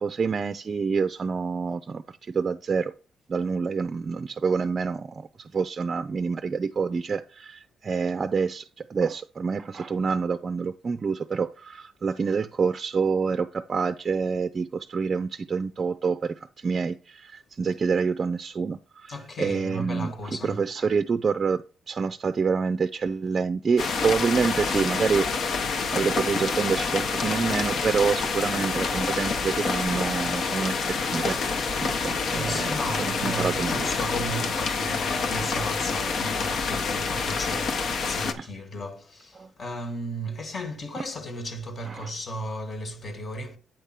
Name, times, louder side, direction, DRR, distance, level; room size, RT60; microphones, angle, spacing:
voice 1, 0.0-2.9 3.3-21.6 21.9-25.3 25.9-31.4 31.8-33.9 38.4-38.5 39.4-39.5 41.9-42.1, right 5 dB, 40° right, 0.4 m, -27 dB
voice 2, 19.1-20.7 32.1-43.6, equal, 40° left, 1.4 m, -35 dB
sound 1, 23.8-38.3, left 4 dB, 60° left, 1.0 m, -27 dB
8.8 x 3.5 x 5.7 m
cardioid pair, 90°, 0 cm